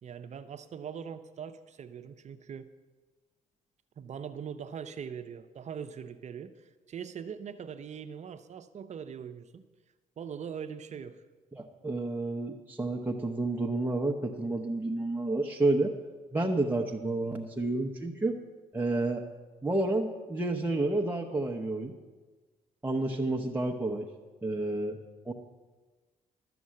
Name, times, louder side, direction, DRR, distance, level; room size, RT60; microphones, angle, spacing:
voice 1, 0.0-2.7 4.0-9.6 10.2-11.2, right 7 dB, 50° right, 9 dB, 0.7 m, -41 dB
voice 2, 11.5-15.9 16.3-18.4 18.7-19.3 19.6-21.9 22.8-24.1 24.4-25.0 25.2-25.3, right 2 dB, 15° right, 0 dB, 0.9 m, -30 dB
12.5 x 7.0 x 7.6 m, 1.3 s
cardioid pair, 90°, 15 cm